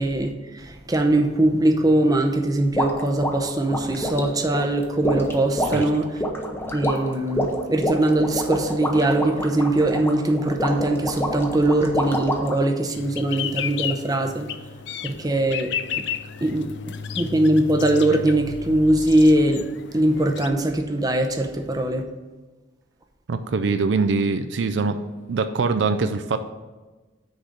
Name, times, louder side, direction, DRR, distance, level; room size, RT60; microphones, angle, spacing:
voice 1, 0.0-6.2 6.7-14.5 15.0-15.7 16.0-16.1 16.4-19.6 19.9-22.0, right 1 dB, 20° right, 4 dB, 0.6 m, -21 dB
sound 1, 2.7-12.6, equal, 10° left, 0.7 m, -27 dB
sound 2, 12.9-20.5, left 8 dB, 60° left, 0.4 m, -33 dB
voice 2, 23.3-25.0 25.3-26.4, right 4 dB, 65° right, 9 dB, 0.4 m, -23 dB
6.3 x 4.9 x 6.7 m, 1.3 s
head